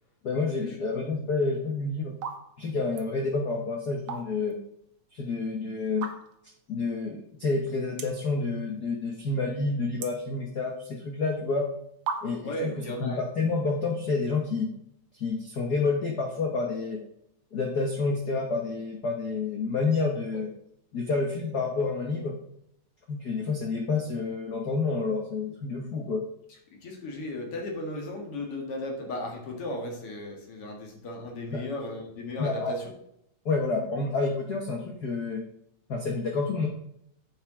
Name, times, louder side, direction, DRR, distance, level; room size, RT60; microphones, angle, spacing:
voice 1, 0.2-2.2 2.6-4.6 5.1-6.1 6.7-11.7 12.2-14.7 15.1-17.0 17.5-20.5 20.9-22.3 23.1-26.2 31.5-31.6 32.4-32.7 33.4-35.4 35.9-36.7, left 3 dB, 75° left, 2 dB, 0.9 m, -29 dB
sound 1, 1.4-1.6 2.1-2.4 2.7-3.1 3.8-4.6 4.9-5.0 5.9-6.5 7.0-7.1 7.3-7.4 7.9-8.3 8.7-9.2 9.5-10.9 11.6-11.7 12.1-12.6, right 6 dB, 85° right, 2.4 m, -36 dB
voice 2, 12.4-13.2 26.8-32.9, left 1 dB, 55° left, 1 dB, 2.4 m, -35 dB
8.0 x 6.4 x 4.8 m, 0.75 s
omnidirectional pair, 3.3 m